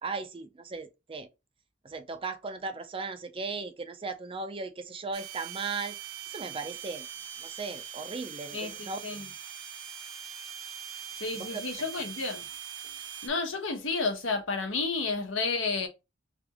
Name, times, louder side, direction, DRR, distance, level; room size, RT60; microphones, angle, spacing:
voice 1, 0.0-1.3 1.8-6.0 6.3-7.1 7.4-9.0 11.3-11.9, right 4 dB, 30° right, 0.5 m, -37 dB
sound 1, 5.1-13.3, right 9 dB, 75° right, 0.8 m, -42 dB
voice 2, 8.5-9.3 11.2-12.5 13.2-15.9, left 4 dB, 85° left, 1.1 m, -31 dB
3.4 x 3.0 x 3.4 m
head